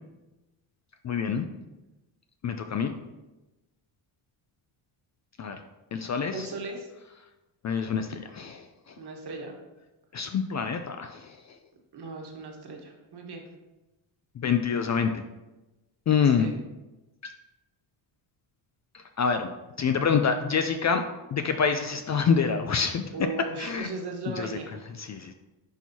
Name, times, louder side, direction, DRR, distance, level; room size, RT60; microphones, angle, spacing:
voice 1, 1.0-1.5 2.4-2.9 5.4-5.6 5.9-6.5 7.6-8.6 10.1-11.4 14.4-15.2 16.1-16.5 17.2-17.3 18.9-19.5 19.8-21.0 21.3-23.0 23.6-23.9 24.4-24.6 24.9-25.3, left 6 dB, 40° left, 7 dB, 0.4 m, -26 dB
voice 2, 6.3-6.9 9.0-9.5 11.9-13.5 16.2-16.5 23.1-24.8, right 3 dB, 50° right, 2 dB, 1.4 m, -37 dB
10.5 x 4.5 x 2.8 m, 1.1 s
cardioid pair, 120°, 49 cm